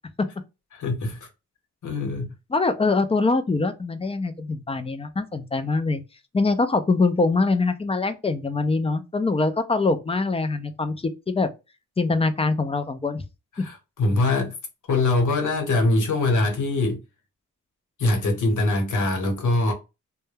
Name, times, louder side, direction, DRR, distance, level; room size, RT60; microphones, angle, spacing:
voice 1, 0.7-1.2 1.8-2.3 13.6-14.5 14.9-17.0 18.0-19.7, left 2 dB, 70° left, 1.0 m, -23 dB
voice 2, 2.5-6.0 6.3-11.5 12.0-13.2, left 3 dB, 20° left, 0.3 m, -23 dB
2.2 x 2.2 x 3.1 m
wide cardioid pair, 120°, 31 cm